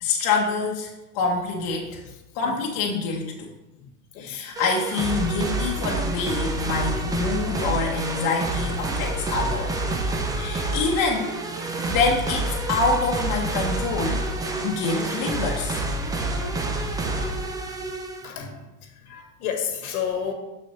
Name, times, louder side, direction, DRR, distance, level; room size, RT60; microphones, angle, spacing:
voice 1, 0.0-2.0 2.3-3.5 4.2-9.7 10.3-11.3 11.9-14.3 14.6-15.8, left 4 dB, 45° left, -1 dB, 1.0 m, -26 dB
voice 2, 4.1-4.5 16.8-17.0 18.2-20.3, left 8 dB, 70° left, 3 dB, 1.5 m, -32 dB
sound 1, 4.6-18.3, right 2 dB, 10° right, 0.4 m, -28 dB
6.3 x 6.1 x 3.0 m, 1.0 s
hypercardioid pair, 100°, 46 cm